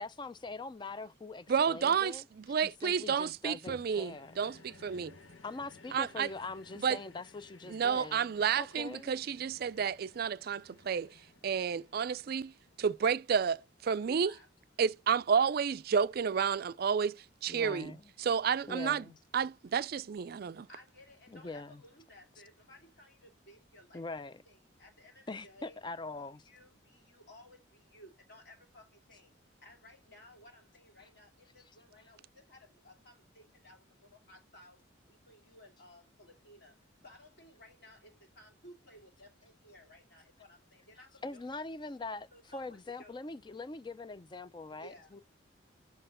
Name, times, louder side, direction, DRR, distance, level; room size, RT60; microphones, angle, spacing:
voice 1, 0.0-2.3 2.6-4.3 5.4-8.3 8.6-9.1 17.5-18.0 18.7-19.1 21.3-21.8 23.9-24.4 25.3-26.5 31.0-31.1 31.7-32.1 41.2-45.2, left 3 dB, 25° left, 0.4 m, -43 dB
voice 2, 1.5-5.2 5.9-6.3 6.8-7.0 7.7-11.2 11.4-12.5 12.8-14.3 14.8-17.9 18.2-19.0 19.3-20.7, right 6 dB, 50° right, 0.3 m, -31 dB
sound 1, 3.7-14.2 14.8-14.9, left 3 dB, 70° left, 1.5 m, -58 dB
voice 3, 14.0-14.5 20.7-25.8 26.2-29.3 29.6-34.8 35.1-36.8 37.0-41.4 42.3-43.1 44.7-45.1, left 1 dB, 55° left, 2.6 m, -57 dB
6.5 x 4.4 x 6.5 m
head